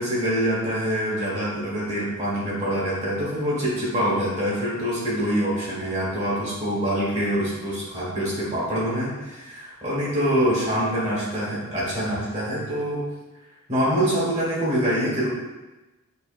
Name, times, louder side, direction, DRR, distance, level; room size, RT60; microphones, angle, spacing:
voice 1, 0.0-13.0 13.7-15.3, equal, 35° right, -7 dB, 1.4 m, -25 dB
5.5 x 2.8 x 2.5 m, 1.1 s
head